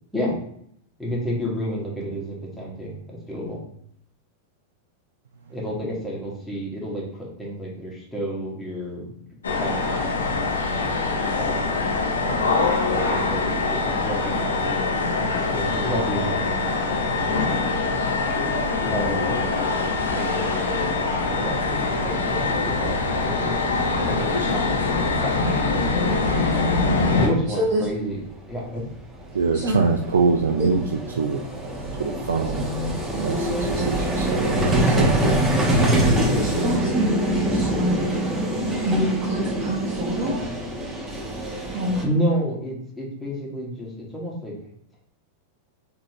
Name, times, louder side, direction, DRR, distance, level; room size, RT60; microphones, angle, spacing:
voice 1, 1.0-3.6 5.5-9.1 9.5-10.1 11.3-11.7 12.2-14.9 15.1-17.7 18.8-23.6 24.0-26.1 27.1-28.2 28.5-28.9 42.0-44.6, equal, 5° left, -5 dB, 1.5 m, -30 dB
sound 1, 9.4-27.3, left 3 dB, 85° left, 0.7 m, -23 dB
Vehicle, 25.9-26.0 26.2-26.4 28.4-28.5 28.7-42.0, right 1 dB, 10° right, 1.0 m, -24 dB
voice 2, 29.3-31.4 32.0-32.7 33.1-35.3, right 4 dB, 85° right, 2 dB, 0.3 m, -24 dB
voice 3, 36.3-38.1 38.8-40.3 41.7-42.0, equal, 40° right, -6 dB, 1.1 m, -26 dB
4.0 x 2.7 x 3.0 m, 0.68 s
hypercardioid pair, 105°, 0 cm